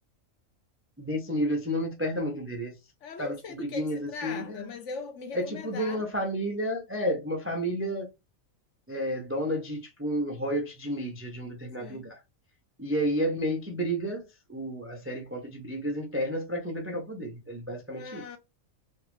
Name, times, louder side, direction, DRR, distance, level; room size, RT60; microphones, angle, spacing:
voice 1, 1.0-2.7 3.2-4.7 5.3-8.1 8.9-12.2 12.8-18.2, equal, 20° right, 0.3 m, -31 dB
voice 2, 3.0-6.0 11.8-12.1 17.9-18.4, left 4 dB, 65° left, 1.0 m, -40 dB
3.2 x 2.6 x 3.0 m
omnidirectional pair, 1.4 m